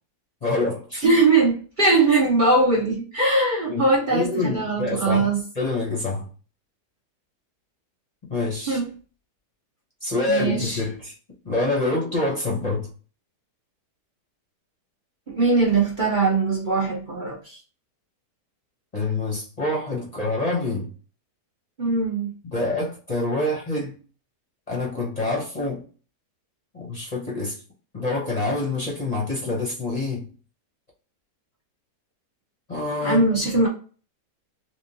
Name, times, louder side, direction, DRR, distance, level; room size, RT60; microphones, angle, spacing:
voice 1, 0.4-1.1 3.7-3.9 4.1-6.3 8.3-8.8 10.0-11.1 11.4-12.9 18.9-20.9 22.5-24.0 24.7-25.8 26.7-27.6 27.9-30.3 32.7-33.4, left 2 dB, 30° left, -3 dB, 0.8 m, -26 dB
voice 2, 1.0-5.4 8.7-8.9 10.3-10.8 15.3-17.6 21.8-22.3 33.0-33.7, right 3 dB, 35° right, -3 dB, 0.8 m, -21 dB
3.6 x 3.1 x 2.7 m, 0.38 s
omnidirectional pair, 1.8 m